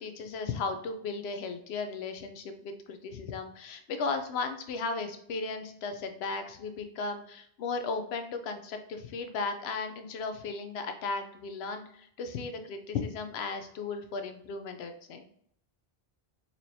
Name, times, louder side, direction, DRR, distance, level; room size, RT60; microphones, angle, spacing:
voice 1, 0.0-15.2, left 4 dB, 85° left, 7 dB, 0.8 m, -36 dB
4.2 x 3.0 x 2.7 m, 0.68 s
omnidirectional pair, 1.0 m